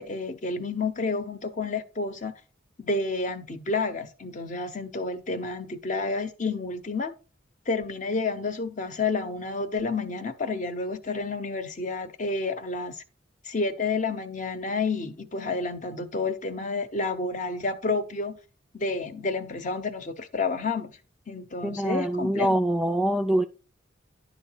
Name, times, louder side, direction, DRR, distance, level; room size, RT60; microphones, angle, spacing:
voice 1, 0.0-2.3 2.8-7.1 7.7-13.0 13.4-18.4 18.7-21.0 21.3-22.6, left 3 dB, 40° left, 0.9 m, -30 dB
voice 2, 21.6-23.4, right 1 dB, ahead, 0.3 m, -24 dB
11.0 x 4.1 x 4.7 m
head